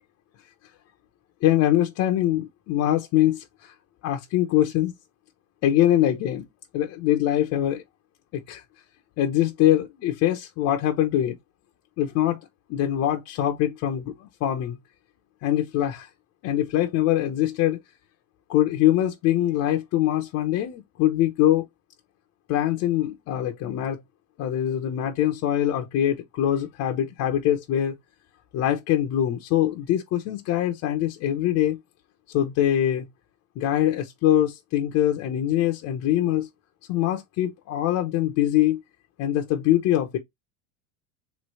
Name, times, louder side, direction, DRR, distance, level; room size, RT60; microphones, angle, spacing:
voice 1, 1.4-3.7 4.0-4.9 5.6-6.5 6.7-7.8 8.3-8.6 9.2-11.4 12.0-12.4 12.7-14.8 15.4-16.1 16.4-17.8 18.5-21.6 22.5-24.0 24.4-27.9 28.5-31.8 32.3-33.1 33.6-36.5 36.9-38.8 39.2-40.2, left 12 dB, 45° left, 0.8 m, -23 dB
3.5 x 3.2 x 4.6 m
supercardioid pair, 140°, 39 cm